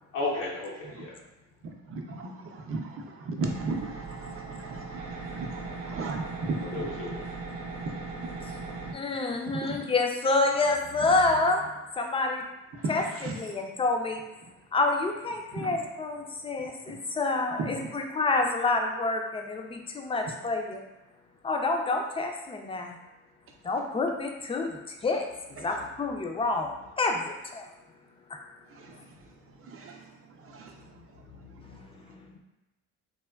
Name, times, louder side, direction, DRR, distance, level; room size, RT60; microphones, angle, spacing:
voice 1, 0.1-1.1 6.4-7.3 31.4-31.7 32.0-32.4, left 2 dB, 75° left, -5 dB, 0.6 m, -35 dB
voice 2, 1.9-7.2 7.9-8.0 8.9-9.0 9.5-9.9 12.7-13.6 15.5-15.8 16.6-17.0 17.8-17.9 25.6-25.7 28.7-29.1 29.5-31.0, right 3 dB, 40° right, 2 dB, 0.5 m, -37 dB
sound 1, 3.4-8.9, right 3 dB, 85° right, 0.5 m, -39 dB
voice 3, 8.9-11.6 12.0-12.4 12.9-13.0 13.4-14.2 14.7-20.8 21.4-23.0 23.6-26.7 27.0-27.7, left 3 dB, 20° left, 2 dB, 0.3 m, -28 dB
3.3 x 2.2 x 2.2 m, 1.0 s
cardioid pair, 90°, 33 cm